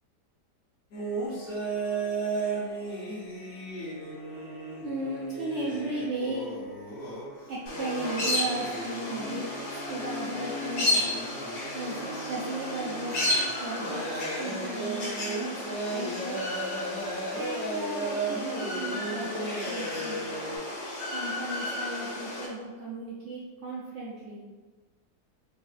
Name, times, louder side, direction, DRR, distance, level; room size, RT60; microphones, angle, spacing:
sound 1, 0.9-20.6, right 2 dB, 60° left, 0.6 m, -35 dB
voice 1, 4.8-6.5 7.5-11.1 11.7-13.2 13.6-16.4 17.3-20.3 21.1-24.4, right 2 dB, 80° right, -6 dB, 0.6 m, -36 dB
black necked aracari, 7.7-22.5, left 1 dB, 80° left, 1.4 m, -33 dB
4.1 x 2.3 x 2.4 m, 1.3 s
omnidirectional pair, 1.8 m